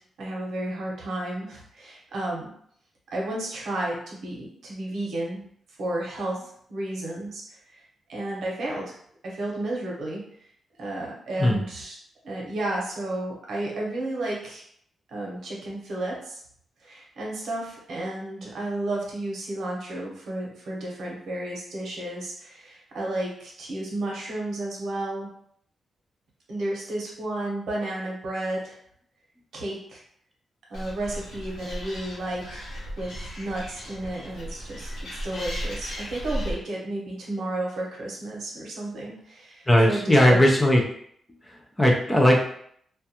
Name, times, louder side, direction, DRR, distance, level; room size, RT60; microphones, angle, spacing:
voice 1, 0.2-2.5 3.1-5.5 5.8-7.4 7.7-7.8 8.1-8.9 9.2-10.2 10.8-12.0 12.2-14.7 15.1-16.4 16.8-25.3 26.5-28.8 29.5-30.0 30.7-32.6 33.0-34.9 35.2-40.4, right 1 dB, 75° right, -2 dB, 0.8 m, -32 dB
Animal, 30.7-36.5, equal, 75° left, 1.0 m, -36 dB
voice 2, 39.7-40.8 41.4-42.4, left 1 dB, 10° left, -1 dB, 0.4 m, -18 dB
2.3 x 2.2 x 2.8 m, 0.66 s
wide cardioid pair, 150°, 0 cm